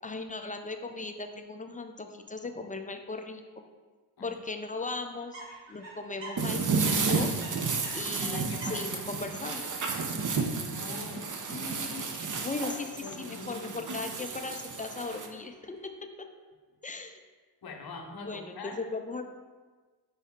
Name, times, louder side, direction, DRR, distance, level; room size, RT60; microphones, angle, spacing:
voice 1, 0.0-3.6 4.2-5.4 5.7-7.3 7.9-9.7 11.5-15.9 16.2-16.3 16.8-17.2 18.2-19.3, left 3 dB, 20° left, 6 dB, 0.3 m, -38 dB
sound 1, 5.3-15.9, right 2 dB, 70° right, 1.2 m, -50 dB
sound 2, 6.4-15.3, right 4 dB, 40° right, 0.6 m, -32 dB
voice 2, 8.2-9.2 10.6-11.4 13.0-13.8 17.6-18.8, left 4 dB, 55° left, 3 dB, 0.8 m, -43 dB
5.3 x 2.7 x 3.6 m, 1.4 s
supercardioid pair, 40°, 46 cm